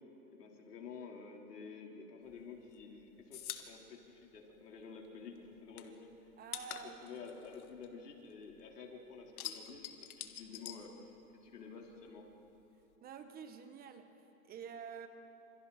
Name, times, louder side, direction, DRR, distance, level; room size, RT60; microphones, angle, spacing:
voice 1, 0.3-6.1 6.8-11.1 11.4-12.3, left 5 dB, 85° left, 0 dB, 4.3 m, -50 dB
sound 1, 2.3-5.1 5.4-8.7 9.0-11.6 11.8-12.9, left 10 dB, 65° left, 2.0 m, -47 dB
voice 2, 6.4-7.2 13.0-15.1, right 7 dB, 20° right, 8 dB, 1.2 m, -49 dB
28.0 x 27.5 x 4.4 m, 2.9 s
hypercardioid pair, 135°, 46 cm